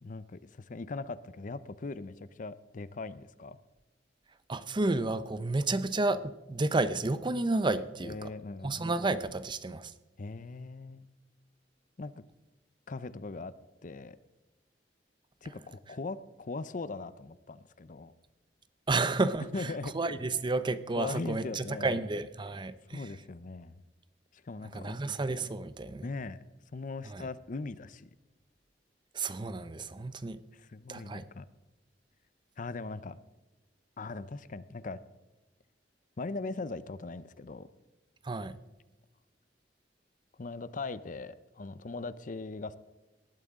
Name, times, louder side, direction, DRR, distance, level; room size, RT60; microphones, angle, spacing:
voice 1, 0.0-3.6 5.6-5.7 8.0-8.9 10.2-11.1 12.0-12.1 12.9-13.5 13.8-14.2 15.4-18.1 19.5-19.9 21.0-22.0 22.9-23.8 24.3-25.0 26.0-26.4 26.7-28.1 30.5-31.5 32.6-33.2 34.0-35.0 36.2-37.7 40.4-42.8, left 3 dB, 50° left, 16 dB, 0.6 m, -40 dB
voice 2, 4.5-8.3 8.6-9.9 18.9-23.1 24.7-26.1 27.0-27.3 29.1-30.4 30.9-31.2 38.2-38.5, right 2 dB, 25° right, 13 dB, 0.6 m, -31 dB
19.0 x 12.5 x 3.7 m, 1.1 s
head